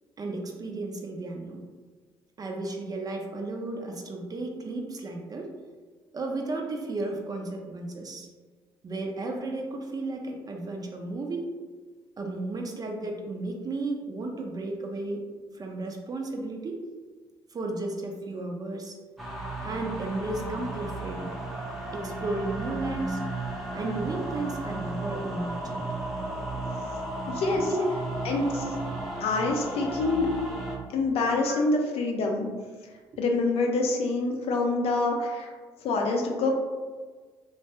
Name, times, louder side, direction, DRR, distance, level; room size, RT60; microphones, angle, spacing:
voice 1, 0.2-1.6 2.4-5.5 6.1-8.3 8.8-11.5 12.2-15.2 15.5-16.8 17.5-18.9 19.6-21.3 21.9-23.2 23.7-25.9 27.7-27.9 28.5-28.7 29.7-30.2 31.5-31.7 35.2-35.4, right 2 dB, 30° right, 2 dB, 0.5 m, -34 dB
sound 1, 19.2-30.8, right 2 dB, ahead, 0.8 m, -34 dB
voice 2, 27.3-27.7 28.2-28.6 29.2-30.3 30.9-32.5 33.2-35.5 35.8-36.5, left 3 dB, 55° left, 1 dB, 0.5 m, -26 dB
3.0 x 2.1 x 2.9 m, 1.5 s
figure-of-eight pair, 45°, 12 cm